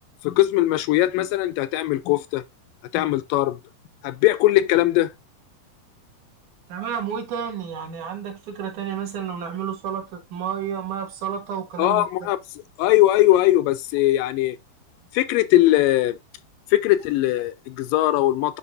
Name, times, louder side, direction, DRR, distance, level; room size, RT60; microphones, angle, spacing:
voice 1, 0.2-2.4 2.9-3.6 4.0-5.1 11.8-12.4 12.8-14.6 15.1-16.2 16.7-18.6, left 15 dB, 85° left, 2.4 m, -20 dB
voice 2, 6.7-12.1, right 8 dB, 65° right, 2.6 m, -30 dB
9.7 x 4.4 x 2.5 m
omnidirectional pair, 4.0 m